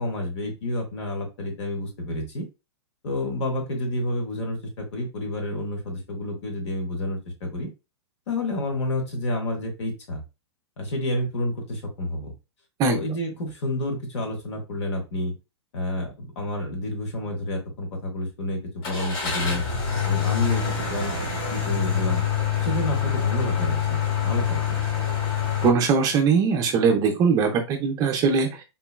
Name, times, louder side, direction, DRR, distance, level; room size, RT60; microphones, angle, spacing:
voice 1, 0.0-2.5 3.0-7.7 8.3-10.2 10.8-12.3 12.9-15.3 15.7-19.6 20.1-22.2 22.6-24.8, left 1 dB, 70° left, 2 dB, 1.0 m, -29 dB
Car / Engine starting, 18.8-25.7, left 8 dB, 50° left, 1.5 m, -26 dB
voice 2, 25.6-28.6, right 5 dB, 25° right, 3 dB, 0.4 m, -21 dB
3.7 x 2.1 x 2.2 m, 0.27 s
hypercardioid pair, 135°, 15 cm